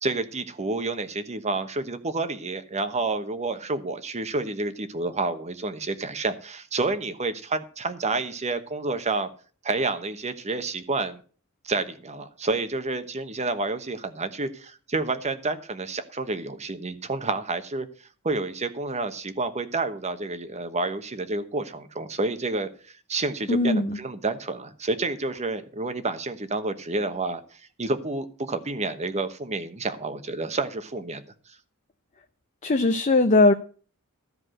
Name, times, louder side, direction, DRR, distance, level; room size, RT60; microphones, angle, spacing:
voice 1, 0.0-9.3 9.6-11.2 11.6-17.9 18.2-31.5, right 3 dB, 30° right, 10 dB, 1.1 m, -29 dB
voice 2, 23.5-24.0 32.6-33.5, left 2 dB, 35° left, 6 dB, 0.6 m, -19 dB
13.5 x 4.8 x 7.8 m, 0.41 s
head